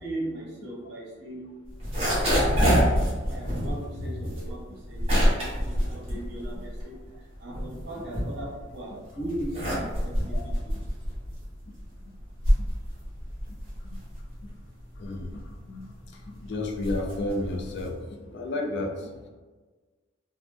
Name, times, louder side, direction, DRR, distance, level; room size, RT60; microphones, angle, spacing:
voice 1, 0.0-1.5 2.1-3.0 3.3-4.6 4.9-7.0 7.4-10.3 10.6-10.7, right 1 dB, 60° right, -5 dB, 1.2 m, -37 dB
sound 1, 1.7-7.0 7.3-8.8 9.2-18.0, equal, 30° right, 1.1 m, -27 dB
voice 2, 15.0-19.3, left 2 dB, 60° left, 2 dB, 0.4 m, -33 dB
3.3 x 2.0 x 3.2 m, 1.3 s
head